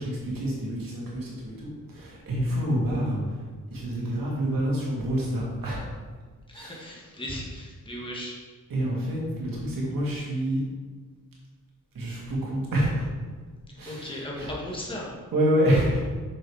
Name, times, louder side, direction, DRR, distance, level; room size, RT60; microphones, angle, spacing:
voice 1, 0.0-3.4 3.7-5.8 6.5-6.9 8.7-10.6 11.9-13.1 13.8-14.5 15.3-16.0, equal, 90° right, -4 dB, 2.4 m, -27 dB
voice 2, 6.5-8.4 13.9-15.1, left 1 dB, 15° left, -4 dB, 1.9 m, -36 dB
6.8 x 5.3 x 4.9 m, 1.4 s
cardioid pair, 85°, 33 cm